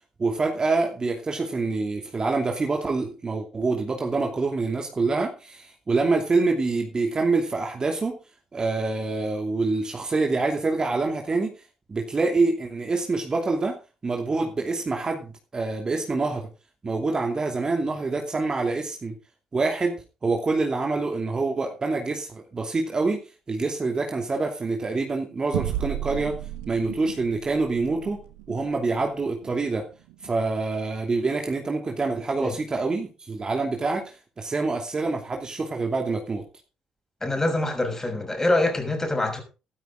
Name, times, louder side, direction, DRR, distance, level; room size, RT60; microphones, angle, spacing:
voice 1, 0.2-8.2 8.5-11.5 11.9-13.8 14.0-16.5 16.8-19.2 19.5-19.9 20.2-23.2 23.5-26.4 26.7-28.2 28.5-29.9 30.2-36.4, right 3 dB, 35° right, 2.8 m, -26 dB
sound 1, 25.5-30.4, right 12 dB, 90° right, 1.5 m, -35 dB
voice 2, 37.2-39.4, left 2 dB, 20° left, 6.0 m, -25 dB
13.5 x 12.5 x 3.9 m
supercardioid pair, 55°, 2 cm